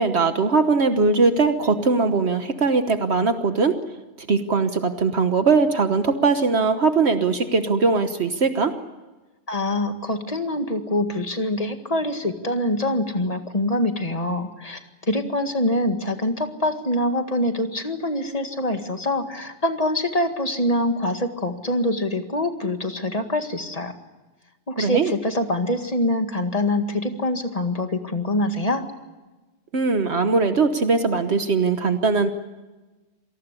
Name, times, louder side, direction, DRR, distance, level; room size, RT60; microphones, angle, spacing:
voice 1, 0.0-3.8 4.3-8.7 24.8-25.1 29.7-32.3, right 4 dB, 70° right, 8 dB, 1.5 m, -20 dB
voice 2, 9.5-14.8 15.1-23.9 24.7-28.8, left 1 dB, 30° left, 6 dB, 2.0 m, -24 dB
27.0 x 19.5 x 8.3 m, 1.2 s
omnidirectional pair, 1.2 m